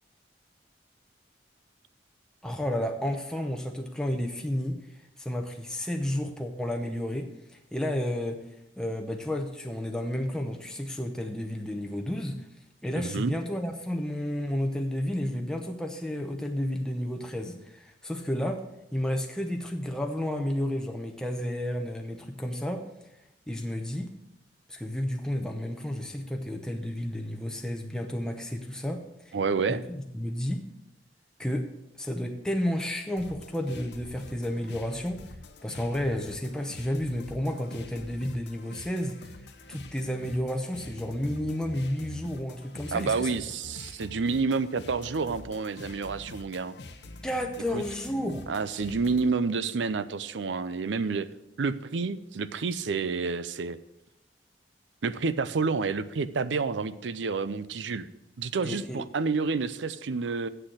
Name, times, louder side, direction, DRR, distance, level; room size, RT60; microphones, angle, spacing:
voice 1, 2.4-4.8 5.2-7.3 7.7-8.4 8.8-12.4 12.8-18.6 18.9-22.8 23.5-24.1 24.7-29.4 29.7-30.6 31.4-35.2 35.6-39.3 39.7-43.3 47.2-48.5 58.6-59.0, left 1 dB, 5° left, 2 dB, 0.7 m, -31 dB
voice 2, 12.9-13.3 29.3-29.8 42.9-46.8 47.7-47.8 48.5-51.3 51.6-53.8 55.0-58.1 58.4-60.5, right 4 dB, 90° right, 15 dB, 0.5 m, -29 dB
sound 1, 33.2-49.3, left 2 dB, 65° left, 0.7 m, -45 dB
7.7 x 6.5 x 7.8 m, 0.88 s
head